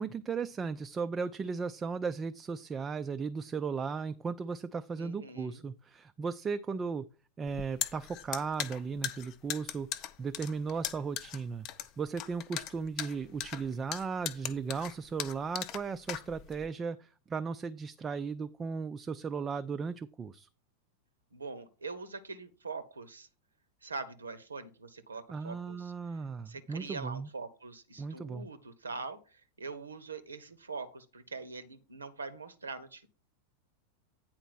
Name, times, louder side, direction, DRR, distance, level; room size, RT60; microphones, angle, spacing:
voice 1, 0.0-7.1 7.4-9.9 10.2-20.5 25.3-27.3 28.0-28.5, right 5 dB, 20° right, 9 dB, 0.4 m, -36 dB
voice 2, 5.0-5.6 21.3-23.3 23.8-25.9 26.5-33.1, right 4 dB, 75° right, 12 dB, 0.8 m, -43 dB
sound 1, 7.5-16.7, left 11 dB, 40° left, 0.6 m, -39 dB
9.1 x 4.3 x 5.9 m, 0.34 s
figure-of-eight pair, 90°, 0 cm